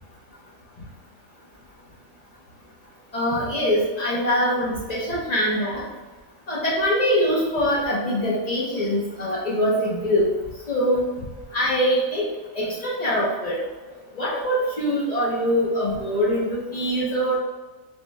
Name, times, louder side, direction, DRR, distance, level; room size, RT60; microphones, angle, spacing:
voice 1, 3.1-5.8 6.5-10.3 10.7-11.1 11.5-12.2 12.5-13.6 14.2-17.4, equal, 65° left, -5 dB, 0.4 m, -23 dB
3.4 x 2.0 x 3.4 m, 1.2 s
omnidirectional pair, 1.5 m